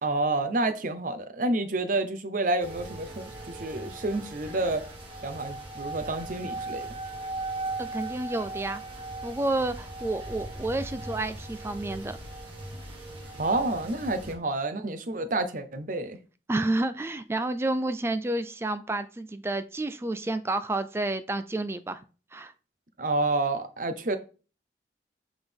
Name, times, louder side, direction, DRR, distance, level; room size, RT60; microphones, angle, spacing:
voice 1, 0.0-4.8 5.2-6.9 13.4-16.2 23.0-24.2, right 2 dB, 50° right, 0.7 m, -29 dB
sound 1, 2.6-14.3, right 2 dB, 30° right, 1.7 m, -38 dB
voice 2, 7.8-8.8 9.2-12.2 16.5-22.0 22.3-22.5, right 2 dB, 15° right, 0.3 m, -30 dB
8.0 x 3.7 x 3.5 m
head